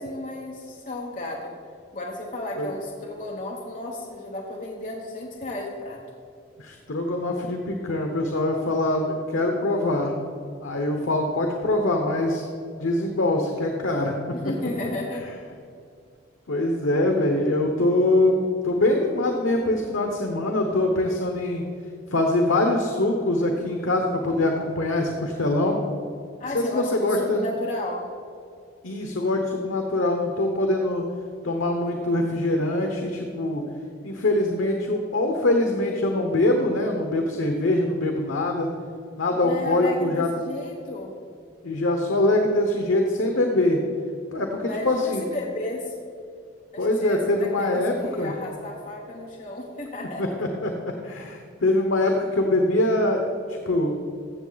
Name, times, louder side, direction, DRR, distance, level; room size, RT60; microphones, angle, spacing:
voice 1, 0.0-1.5 1.9-6.0 14.4-15.2 26.4-28.0 39.4-41.1 44.7-46.0 46.7-50.2, left 2 dB, 40° left, -2 dB, 1.1 m, -33 dB
voice 2, 6.6-10.2 10.6-12.4 12.8-14.2 16.5-18.4 18.6-21.6 22.1-25.8 26.5-27.4 28.8-31.0 31.4-33.6 34.0-38.7 39.2-40.3 41.6-43.8 44.3-45.2 46.8-48.3 50.2-50.7 51.0-54.0, left 1 dB, 85° left, 3 dB, 1.0 m, -23 dB
15.0 x 6.8 x 4.0 m, 2.3 s
head